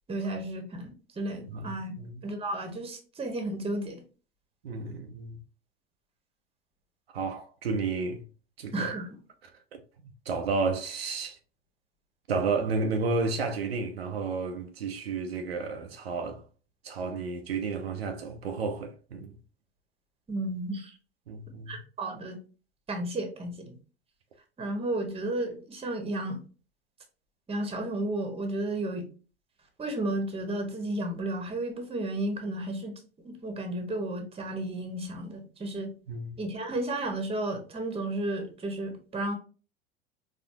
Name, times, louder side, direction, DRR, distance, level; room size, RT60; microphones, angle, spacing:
voice 1, 0.1-2.0 2.2-4.0 8.7-9.1 20.3-21.0 21.7-22.4 22.9-23.8 24.6-26.4 27.5-29.1 29.8-32.9 33.2-35.9 36.4-39.3, right 1 dB, 20° right, 1.2 m, -33 dB
voice 2, 1.5-2.2 4.6-5.4 7.1-8.2 8.6-8.9 10.0-11.4 12.3-16.4 16.8-19.4 21.3-21.8 36.1-36.4, right 4 dB, 80° right, 0.6 m, -32 dB
4.2 x 2.7 x 2.7 m
figure-of-eight pair, 80°, 30 cm